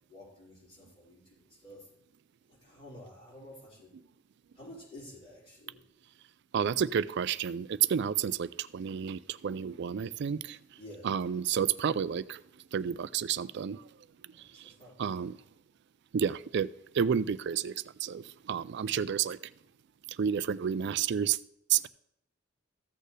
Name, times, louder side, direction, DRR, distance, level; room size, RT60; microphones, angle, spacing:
voice 1, 0.1-1.8 2.6-3.9 4.5-5.8 10.8-11.1 14.4-15.2, left 1 dB, 35° left, 4.4 m, -51 dB
voice 2, 6.5-10.6 11.0-12.4 12.7-13.8 15.0-15.4 16.1-17.7 18.0-19.4 20.2-21.4 21.7-21.9, right 8 dB, 60° right, 0.4 m, -30 dB
14.5 x 6.6 x 3.3 m
head